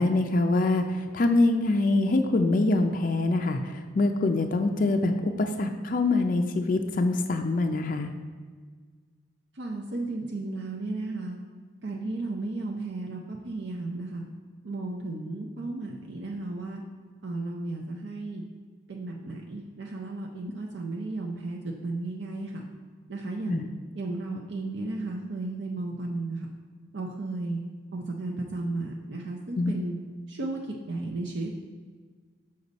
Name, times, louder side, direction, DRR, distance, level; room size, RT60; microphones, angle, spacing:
voice 1, 0.0-3.6 3.9-8.1 23.5-23.6 29.6-29.7, left 2 dB, 40° left, 5 dB, 0.4 m, -24 dB
voice 2, 9.6-11.4 11.8-14.2 14.6-16.8 17.2-18.4 18.9-22.6 23.1-23.7 23.9-26.5 26.9-27.6 27.9-30.0 30.3-31.5, right 2 dB, 60° right, -1 dB, 0.6 m, -34 dB
6.7 x 5.2 x 4.0 m, 1.5 s
head